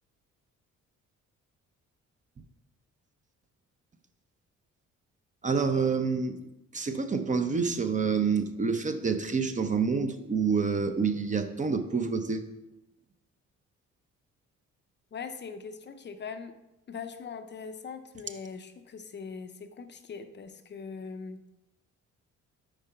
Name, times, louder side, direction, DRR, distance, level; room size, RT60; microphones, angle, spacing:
voice 1, 5.4-6.4 6.7-12.4, right 5 dB, 25° right, 8 dB, 0.5 m, -27 dB
voice 2, 15.1-16.6 16.9-21.4, left 5 dB, 35° left, 8 dB, 0.5 m, -41 dB
4.9 x 4.5 x 5.5 m, 0.96 s
cardioid pair, 90°, 30 cm